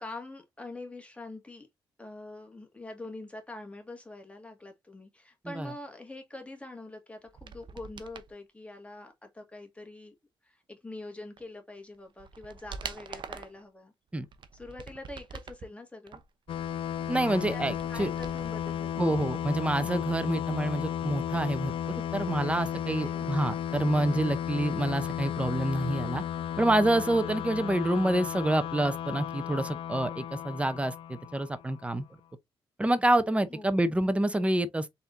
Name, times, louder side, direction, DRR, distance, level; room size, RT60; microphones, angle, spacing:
voice 1, 0.0-1.7 2.0-10.1 10.4-13.9 14.5-16.2 17.5-17.6 17.9-19.3 23.0-23.3 33.5-33.9, left 2 dB, 10° left, 1.8 m, -44 dB
sound 1, 7.3-8.3 11.4-11.5 11.9-13.6 14.2-15.7 16.1-18.7 19.0-19.1, right 5 dB, 50° right, 0.8 m, -45 dB
sound 2, 16.5-31.9, left 9 dB, 65° left, 0.3 m, -34 dB
voice 2, 17.1-18.1 19.0-26.2 26.6-32.0 32.8-34.9, right 1 dB, 10° right, 0.7 m, -27 dB
4.1 x 3.7 x 2.6 m
cardioid pair, 70°, 10 cm